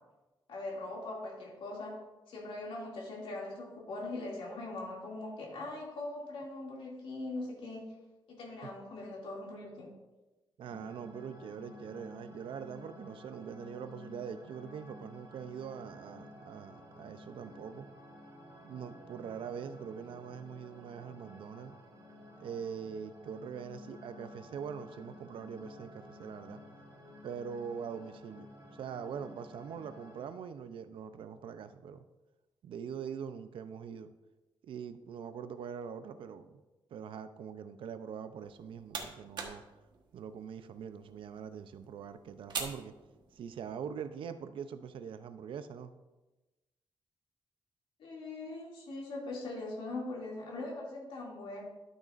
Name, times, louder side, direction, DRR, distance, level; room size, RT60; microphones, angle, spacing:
voice 1, 0.5-2.0 2.3-7.8 8.3-9.9 48.0-51.6, left 2 dB, 85° left, -3 dB, 2.4 m, -41 dB
sound 1, 10.6-30.3, left 1 dB, 40° right, 1.4 m, -53 dB
voice 2, 10.6-17.9 18.6-21.8 22.4-26.6 27.2-28.5 28.7-32.0 32.6-34.1 34.6-36.5 36.9-39.6 40.1-42.9 43.3-45.9, right 7 dB, 80° right, 11 dB, 0.5 m, -43 dB
sound 2, 38.4-43.7, right 5 dB, 55° right, 1.2 m, -45 dB
12.0 x 6.4 x 2.5 m, 1.1 s
wide cardioid pair, 155°, 9 cm